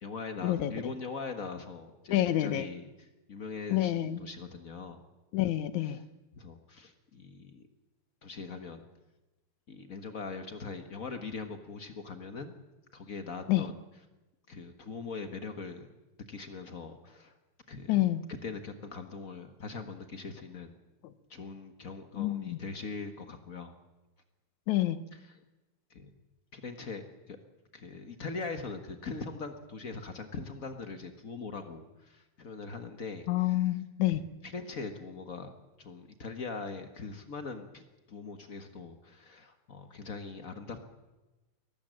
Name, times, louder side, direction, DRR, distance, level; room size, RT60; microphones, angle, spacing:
voice 1, 0.0-5.0 5.8-6.0 6.3-7.7 8.2-8.8 9.7-12.5 12.9-13.8 14.5-16.0 16.3-17.4 17.7-20.8 21.3-23.7 25.1-25.4 25.9-26.2 26.5-27.4 27.7-33.8 34.1-35.5 35.8-40.8, left 4 dB, 55° left, 7 dB, 0.9 m, -41 dB
voice 2, 2.1-2.7 3.7-4.2 5.3-6.0 13.5-13.7 17.9-18.2 22.2-22.6 24.7-25.0 33.3-34.2, left 14 dB, 75° left, 13 dB, 2.2 m, -28 dB
22.5 x 18.0 x 7.6 m, 1.1 s
omnidirectional pair, 3.6 m